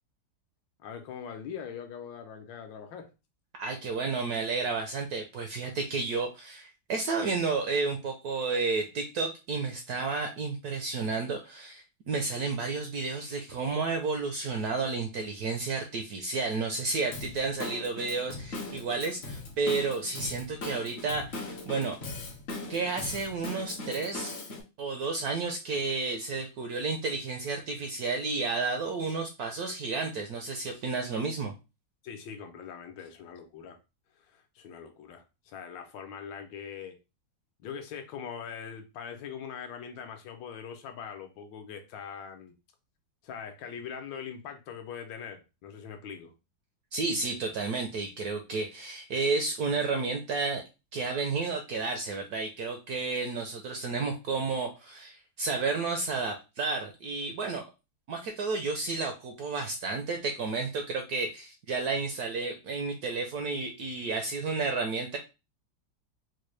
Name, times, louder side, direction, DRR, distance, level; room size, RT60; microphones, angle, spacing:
voice 1, 0.8-3.1 32.0-33.8 34.2-37.0 37.6-42.5 43.2-46.3, left 7 dB, 75° left, 1.3 m, -42 dB
voice 2, 3.6-22.0 22.7-24.4 24.8-31.5 46.9-50.6 50.9-57.7 58.1-65.2, right 4 dB, 70° right, 0.9 m, -31 dB
Drum kit / Drum, 17.1-24.6, left 3 dB, 55° left, 0.7 m, -40 dB
4.4 x 2.2 x 3.2 m
omnidirectional pair, 2.1 m